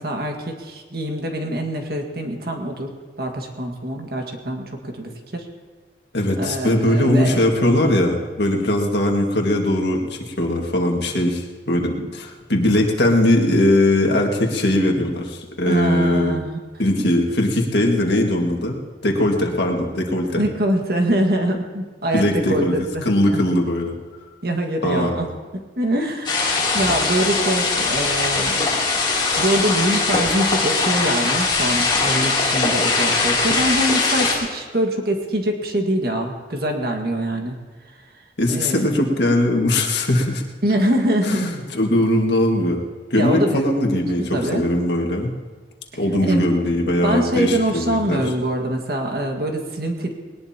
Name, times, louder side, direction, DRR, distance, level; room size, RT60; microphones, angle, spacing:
voice 1, 0.0-5.5 6.4-7.5 15.7-16.6 17.0-17.1 20.4-23.4 24.4-25.3 25.5-26.5 26.7-28.6 29.4-37.6 38.5-38.9 40.6-41.5 43.2-43.7 44.2-44.7 45.9-46.0 46.3-46.5 47.0-50.2, right 1 dB, 55° right, 3 dB, 1.8 m, -24 dB
voice 2, 6.1-16.4 16.8-18.8 19.0-20.4 22.1-22.8 23.0-24.0 24.8-25.3 38.4-40.4 41.2-42.8 43.1-45.3 46.0-48.2, left 1 dB, 70° left, 1 dB, 1.9 m, -20 dB
sound 1, 26.3-34.4, left 3 dB, 25° left, 3.1 m, -21 dB
20.0 x 19.0 x 2.9 m, 1.4 s
head